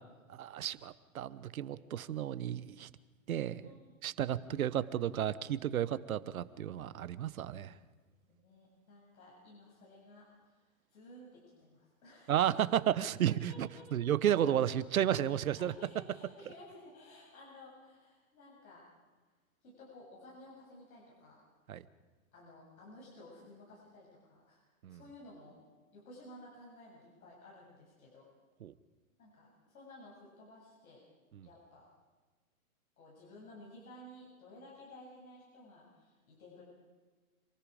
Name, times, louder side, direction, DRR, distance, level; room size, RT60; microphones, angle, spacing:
voice 1, 0.3-2.9 3.3-3.7 4.0-7.7 12.3-15.7 21.7-21.8 24.8-25.0 28.6-28.7 31.4-31.5, right 10 dB, 75° right, 15 dB, 1.1 m, -32 dB
voice 2, 3.6-3.9 4.5-4.6 8.3-12.4 13.3-13.9 15.2-18.8 19.6-21.4 21.7-21.8 22.3-25.6 25.9-28.3 29.2-31.0 31.4-31.9 33.0-36.6, left 1 dB, 85° left, -4 dB, 7.7 m, -55 dB
27.5 x 19.5 x 5.1 m, 1.3 s
hypercardioid pair, 175°, 42 cm